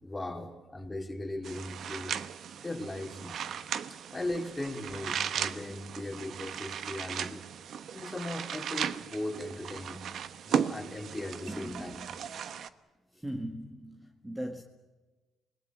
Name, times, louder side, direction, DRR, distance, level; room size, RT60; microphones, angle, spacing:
voice 1, 0.0-2.1 2.6-3.4 4.1-7.4 7.9-10.0 10.5-12.0, left 1 dB, 15° left, 4.0 m, -38 dB
sound 1, 1.4-12.7, right 8 dB, 65° right, 1.1 m, -36 dB
voice 2, 11.4-12.2 13.1-14.6, equal, 10° right, 1.8 m, -39 dB
27.5 x 20.5 x 7.3 m
cardioid pair, 90°, 0 cm